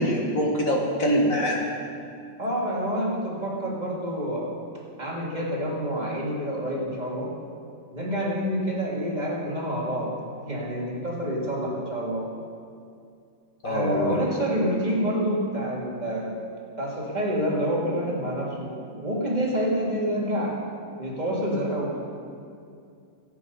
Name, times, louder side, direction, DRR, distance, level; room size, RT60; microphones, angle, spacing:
voice 1, 0.0-1.6 13.6-14.1, equal, 45° left, -1 dB, 1.7 m, -24 dB
voice 2, 2.4-4.5 5.0-7.3 7.9-10.2 10.5-12.3 13.6-16.3 16.8-20.6 20.9-21.9, equal, 20° right, -4 dB, 2.0 m, -27 dB
14.0 x 8.4 x 5.4 m, 2.4 s
omnidirectional pair, 2.3 m